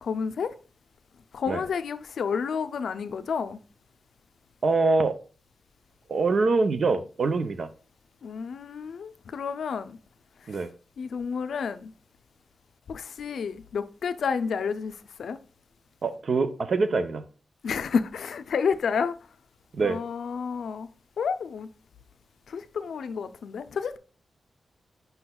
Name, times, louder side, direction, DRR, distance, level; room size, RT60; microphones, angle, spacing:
voice 1, 0.0-0.5 1.3-3.6 8.2-10.0 11.0-11.9 12.9-15.4 17.6-19.2 19.8-20.9 21.2-21.7 22.5-24.0, left 6 dB, 85° left, 0.4 m, -30 dB
voice 2, 4.6-5.1 6.1-7.7 10.5-10.7 16.0-17.2 19.7-20.0, right 3 dB, 50° right, 0.5 m, -24 dB
7.7 x 5.5 x 2.2 m
wide cardioid pair, 175°, 0 cm